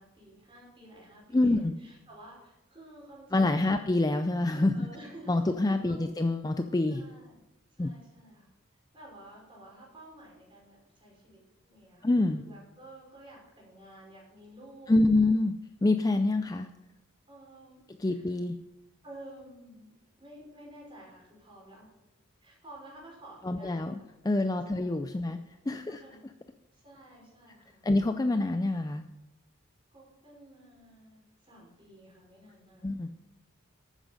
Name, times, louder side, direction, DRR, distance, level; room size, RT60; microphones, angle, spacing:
voice 1, 0.0-3.9 4.7-5.5 5.9-6.1 6.9-7.4 7.7-8.5 8.9-15.3 17.3-18.4 19.0-21.9 22.4-23.9 24.7-25.2 25.9-26.2 26.7-27.9 29.9-32.9, right 1 dB, 25° right, -3 dB, 5.3 m, -52 dB
voice 2, 1.3-1.7 3.3-4.9 5.3-7.0 7.8-7.9 12.0-12.4 14.9-15.5 15.8-16.7 18.0-18.6 23.4-25.4 25.7-26.0 27.8-29.0 32.8-33.1, left 2 dB, 15° left, 8 dB, 0.4 m, -26 dB
12.5 x 9.1 x 5.3 m, 0.95 s
head